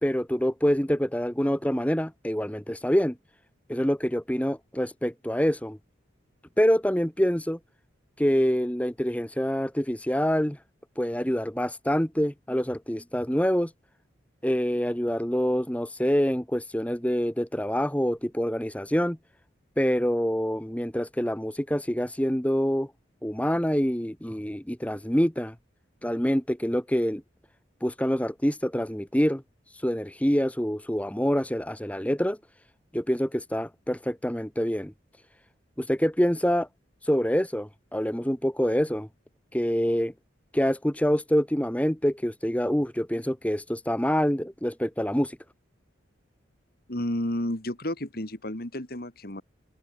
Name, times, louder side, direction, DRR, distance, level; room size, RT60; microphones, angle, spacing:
voice 1, 0.0-3.1 3.7-5.8 6.6-7.6 8.2-10.6 11.0-13.7 14.4-19.2 19.8-22.9 23.2-25.5 26.0-27.2 27.8-29.4 29.8-32.4 32.9-34.9 35.8-36.7 37.0-39.1 39.5-40.1 40.5-45.4, equal, 5° left, 1.6 m, -26 dB
voice 2, 46.9-49.4, left 1 dB, 50° left, 2.8 m, -31 dB
open air
head